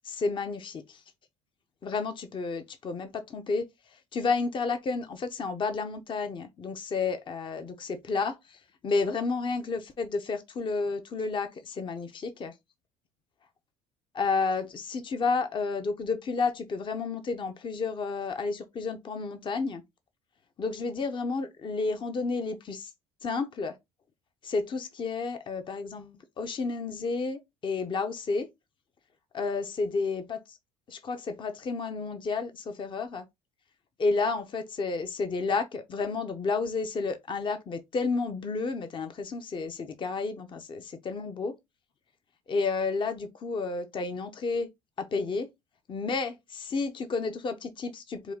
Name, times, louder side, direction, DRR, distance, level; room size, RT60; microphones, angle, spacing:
voice 1, 0.0-1.0 1.8-3.7 4.1-12.5 14.1-19.8 20.6-22.9 23.2-23.7 24.4-28.5 29.3-30.6 30.9-33.2 34.0-41.6 42.5-44.7 45.0-45.5 45.9-48.3, left 4 dB, 35° left, 0.7 m, -31 dB
4.9 x 2.3 x 3.6 m
supercardioid pair, 90°, 15 cm